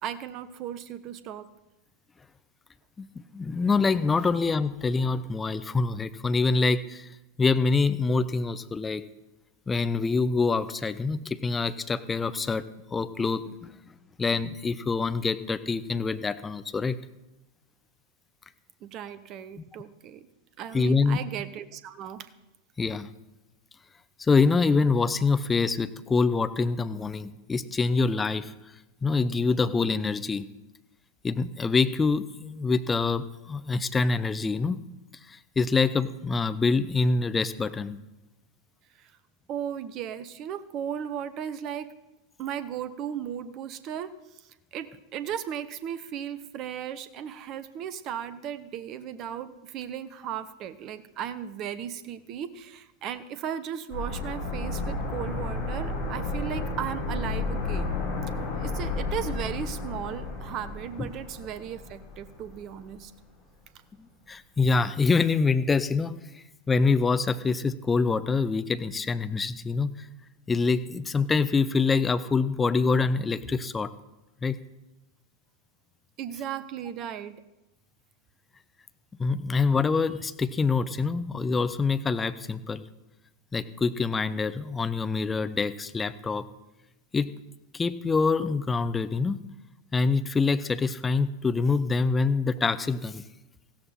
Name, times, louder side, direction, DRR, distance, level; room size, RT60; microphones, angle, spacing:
voice 1, 0.0-1.5 18.8-20.2 20.6-22.3 39.0-39.1 39.5-41.9 42.4-44.1 44.4-57.9 58.6-63.1 76.2-77.4, right 9 dB, 35° right, 14 dB, 0.9 m, -36 dB
voice 2, 3.0-7.1 7.4-9.1 9.7-12.6 12.9-13.7 14.2-17.0 20.7-21.2 22.8-23.1 24.2-28.5 29.0-30.5 31.2-34.8 35.3-38.0 61.0-61.1 64.0-69.9 70.5-73.9 74.4-74.6 79.2-82.8 83.5-86.5 87.1-87.3 87.7-89.4 89.9-93.2, left 4 dB, 15° left, 12 dB, 0.6 m, -25 dB
sound 1, 53.9-62.6 62.9-63.0, left 3 dB, 45° left, 4.7 m, -32 dB
15.5 x 13.5 x 4.3 m, 0.99 s
figure-of-eight pair, 90°, 0 cm